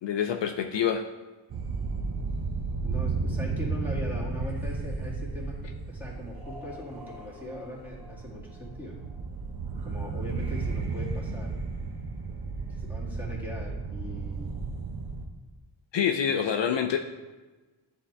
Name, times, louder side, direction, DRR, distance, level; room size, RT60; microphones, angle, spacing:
voice 1, 0.0-1.0 15.9-17.0, left 8 dB, 60° left, 5 dB, 0.5 m, -26 dB
sound 1, 1.5-15.2, right 4 dB, 50° right, 0.8 m, -33 dB
voice 2, 2.8-9.0 9.8-11.6 12.8-14.6 16.3-16.4, left 1 dB, 5° right, -6 dB, 2.1 m, -40 dB
9.6 x 3.6 x 3.3 m, 1.2 s
cardioid pair, 70°, 49 cm